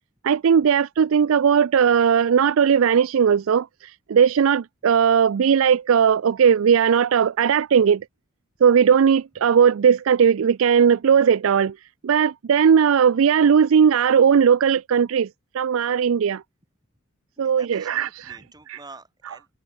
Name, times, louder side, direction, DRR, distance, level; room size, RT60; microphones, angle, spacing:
voice 1, 0.2-3.7 4.1-8.0 8.6-11.7 12.0-15.3 15.5-16.4 17.4-18.4 18.7-18.8, right 7 dB, 75° right, 0.4 m, -18 dB
voice 2, 17.4-19.5, right 3 dB, 20° right, 4.7 m, -47 dB
head